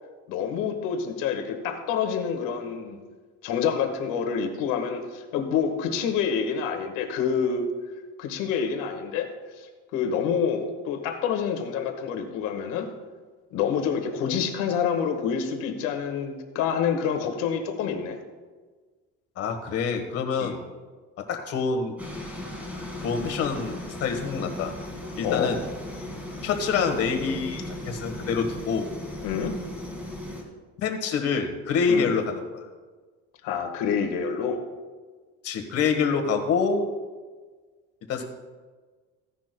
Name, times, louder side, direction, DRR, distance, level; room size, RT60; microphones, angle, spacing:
voice 1, 0.3-3.0 3.4-7.7 8.2-9.3 9.6-12.9 13.5-18.2 20.4-20.6 25.2-25.5 29.2-29.5 31.9-32.1 33.4-34.6, left 7 dB, 85° left, 4 dB, 1.6 m, -27 dB
voice 2, 19.4-20.6 21.2-21.9 23.0-24.7 25.2-25.6 26.4-28.9 30.8-32.7 35.4-36.9 38.1-38.2, left 5 dB, 50° left, 5 dB, 1.5 m, -26 dB
sound 1, 22.0-30.4, left 1 dB, 5° right, 2.1 m, -37 dB
15.5 x 10.5 x 2.3 m, 1.4 s
cardioid pair, 165°, 31 cm